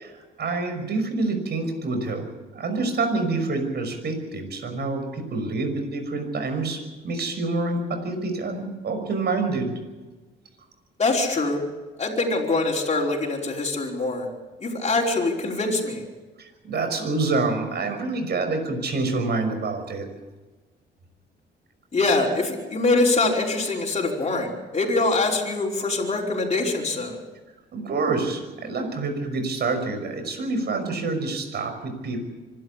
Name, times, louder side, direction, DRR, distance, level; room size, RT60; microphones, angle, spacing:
voice 1, 0.0-2.3 2.5-9.7 16.4-20.1 27.7-32.3, right 3 dB, 55° right, 6 dB, 5.9 m, -27 dB
voice 2, 11.0-11.6 12.0-14.3 14.6-16.0 21.9-27.2, left 3 dB, 35° left, -3 dB, 5.0 m, -24 dB
25.5 x 12.0 x 8.4 m, 1.2 s
cardioid pair, 90°, 20 cm